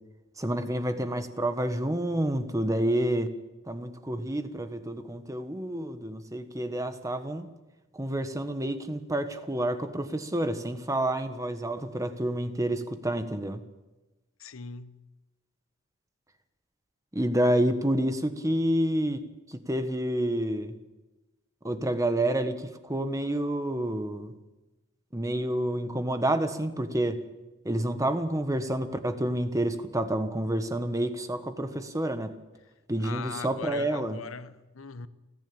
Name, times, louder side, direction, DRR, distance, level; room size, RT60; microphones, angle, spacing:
voice 1, 0.4-3.3 3.7-7.5 7.9-13.6 17.1-20.7 21.6-24.3 25.1-27.2 27.6-32.3 32.9-34.2, right 1 dB, 15° right, 1.3 m, -29 dB
voice 2, 14.4-15.0 33.0-35.1, left 4 dB, 90° left, 1.0 m, -40 dB
29.5 x 10.5 x 8.8 m
head